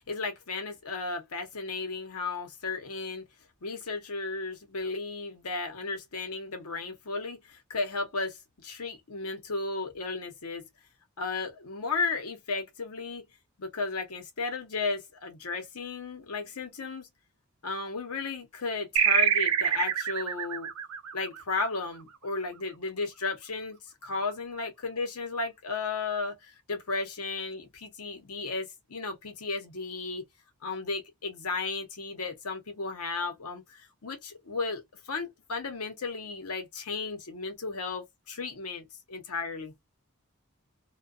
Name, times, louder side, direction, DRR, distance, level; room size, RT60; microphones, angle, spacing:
voice 1, 0.1-3.2 3.6-10.7 11.2-13.2 13.6-17.1 17.6-20.7 21.1-30.2 30.6-39.7, left 4 dB, 85° left, 0.8 m, -34 dB
sound 1, 19.0-22.0, right 8 dB, 80° right, 0.6 m, -26 dB
2.3 x 2.2 x 2.4 m
head